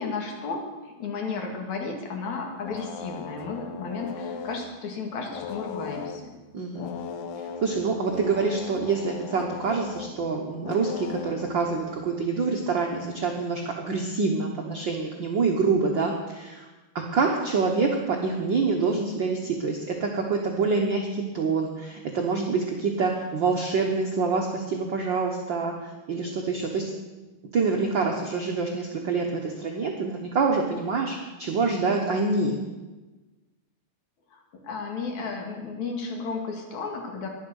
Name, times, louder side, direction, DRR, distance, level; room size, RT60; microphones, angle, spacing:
voice 1, 0.0-6.3 34.3-37.3, left 4 dB, 60° left, 2 dB, 3.2 m, -33 dB
sound 1, 2.3-4.7 5.3-6.4 6.7-12.0, left 7 dB, 75° left, 2.2 m, -38 dB
voice 2, 6.5-6.9 7.4-16.7 16.9-26.9 27.5-32.6, right 4 dB, 80° right, 1 dB, 1.0 m, -26 dB
11.5 x 11.0 x 6.4 m, 1.2 s
omnidirectional pair, 3.8 m